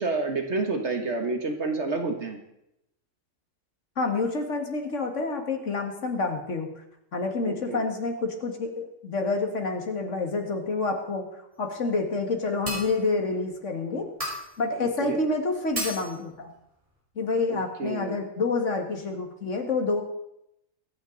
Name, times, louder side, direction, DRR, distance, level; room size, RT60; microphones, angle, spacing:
voice 1, 0.0-2.4 7.4-7.8 15.0-15.2 17.5-18.2, right 3 dB, 55° right, 4 dB, 1.7 m, -29 dB
voice 2, 4.0-6.7 7.1-11.2 11.6-14.1 14.6-16.5 17.2-20.0, left 3 dB, 65° left, 4 dB, 2.2 m, -28 dB
sound 1, 12.7-13.1 14.2-14.6 15.8-16.2, equal, 25° right, 4.2 m, -33 dB
23.0 x 8.9 x 3.9 m, 0.83 s
omnidirectional pair, 1.4 m